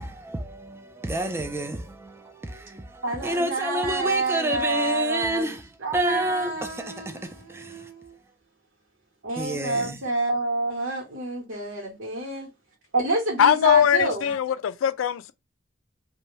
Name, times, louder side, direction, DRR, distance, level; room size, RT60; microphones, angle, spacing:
voice 1, 0.0-5.6 5.9-7.2 7.5-7.7 9.4-10.0, right 1 dB, 10° right, 0.4 m, -29 dB
voice 2, 3.0-8.1 9.2-12.5 12.9-14.3, right 2 dB, 75° right, 1.0 m, -28 dB
voice 3, 13.4-15.3, left 9 dB, 80° left, 0.3 m, -20 dB
2.6 x 2.2 x 3.1 m
head